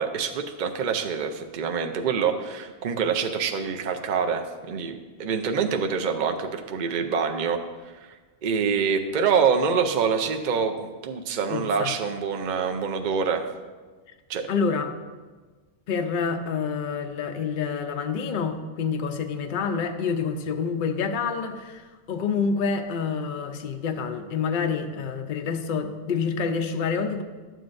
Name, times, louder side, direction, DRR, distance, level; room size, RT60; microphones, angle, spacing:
voice 1, 0.0-7.6 8.4-13.5 14.3-14.5, right 6 dB, 50° right, 4 dB, 0.6 m, -26 dB
voice 2, 11.5-11.9 14.5-14.9 15.9-27.2, left 5 dB, 55° left, 5 dB, 0.7 m, -27 dB
12.0 x 7.7 x 2.6 m, 1.3 s
omnidirectional pair, 1.2 m